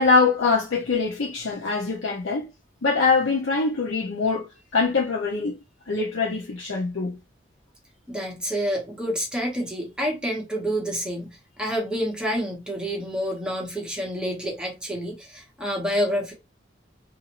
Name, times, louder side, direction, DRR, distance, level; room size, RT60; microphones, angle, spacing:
voice 1, 0.0-2.5 2.8-5.6 5.9-7.2, left 4 dB, 75° left, 0.6 m, -23 dB
voice 2, 8.1-16.3, equal, 5° right, 1.0 m, -28 dB
2.6 x 2.5 x 2.9 m
head